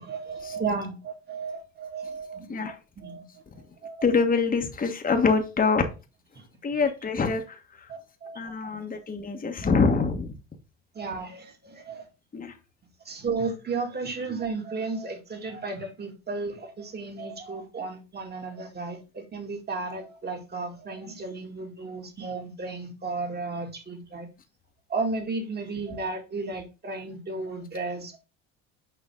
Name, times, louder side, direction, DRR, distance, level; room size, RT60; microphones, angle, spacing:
voice 1, 0.0-4.1 6.4-6.5 7.9-8.9 9.6-9.7 10.9-12.0 13.0-24.3 24.9-28.2, right 3 dB, 30° right, 2.3 m, -34 dB
voice 2, 4.0-5.8 6.6-7.6 8.4-10.3 12.3-12.5, left 4 dB, 25° left, 1.4 m, -25 dB
6.8 x 5.0 x 3.8 m
hypercardioid pair, 65°, 32 cm